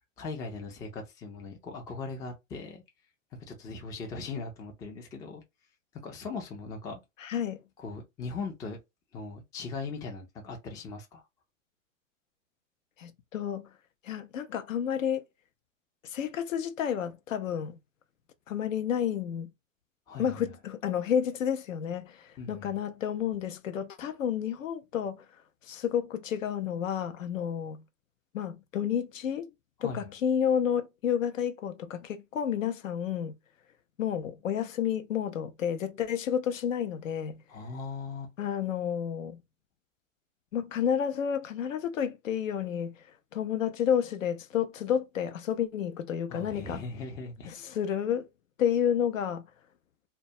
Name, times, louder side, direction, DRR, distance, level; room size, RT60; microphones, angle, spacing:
voice 1, 0.2-2.8 3.5-5.4 6.0-7.0 7.8-8.8 9.1-11.2 20.1-20.4 22.4-22.8 29.8-30.0 37.5-38.3 46.3-47.7, left 4 dB, 10° left, 0.3 m, -39 dB
voice 2, 7.2-7.6 13.0-13.7 14.0-15.2 16.0-17.8 18.5-19.5 20.2-25.2 25.7-27.8 28.3-29.5 29.8-33.3 34.0-37.4 38.4-39.4 40.5-42.9 43.3-46.8 47.6-48.3 48.6-49.4, left 8 dB, 80° left, 0.6 m, -30 dB
2.2 x 2.1 x 2.7 m
hypercardioid pair, 110°, 39 cm